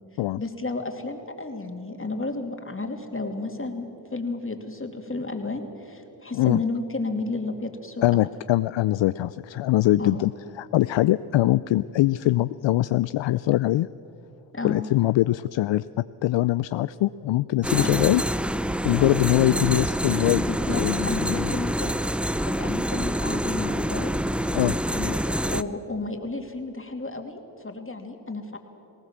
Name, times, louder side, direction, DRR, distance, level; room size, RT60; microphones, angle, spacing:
voice 1, 0.4-3.9 4.1-8.1 10.0-10.2 14.5-14.9 17.8-18.0 20.4-22.0 22.5-24.1 24.9-28.6, left 3 dB, 25° left, 4 dB, 2.8 m, -32 dB
voice 2, 8.0-13.9 14.6-18.2 18.8-20.4 20.7-21.5 24.5-24.8, left 16 dB, 65° left, 15 dB, 0.5 m, -23 dB
sound 1, 17.6-25.6, equal, ahead, 0.6 m, -26 dB
19.5 x 18.5 x 7.4 m, 2.9 s
supercardioid pair, 40°, 49 cm